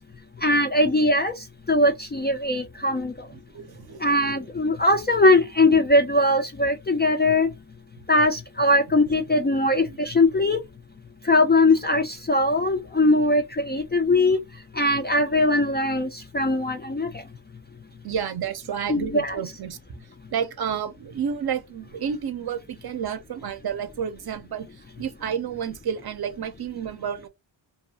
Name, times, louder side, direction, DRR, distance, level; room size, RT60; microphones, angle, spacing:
voice 1, 0.4-1.3 1.7-3.1 4.0-7.5 8.1-10.6 11.3-14.4 14.8-17.1 18.9-19.4, left 2 dB, 25° left, 0.3 m, -20 dB
voice 2, 3.3-4.4 9.9-10.0 18.0-19.8 20.3-24.7 25.0-27.3, right 7 dB, 50° right, 0.6 m, -30 dB
2.6 x 2.3 x 2.7 m
cardioid pair, 80°, 50 cm